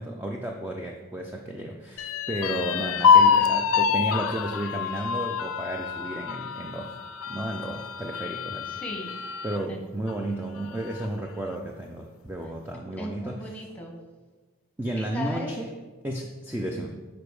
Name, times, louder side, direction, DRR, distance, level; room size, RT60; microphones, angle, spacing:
voice 1, 0.0-6.9 7.3-8.7 9.4-13.5 14.8-15.7 16.0-17.0, right 1 dB, 10° right, 1 dB, 0.4 m, -33 dB
sound 1, 2.0-9.6 10.1-10.2 10.6-11.2, left 6 dB, 75° left, 0.4 m, -25 dB
voice 2, 8.7-9.2 9.7-9.8 13.0-14.0 15.0-15.5, left 1 dB, 5° left, 0 dB, 1.1 m, -37 dB
7.0 x 5.0 x 4.8 m, 1.3 s
head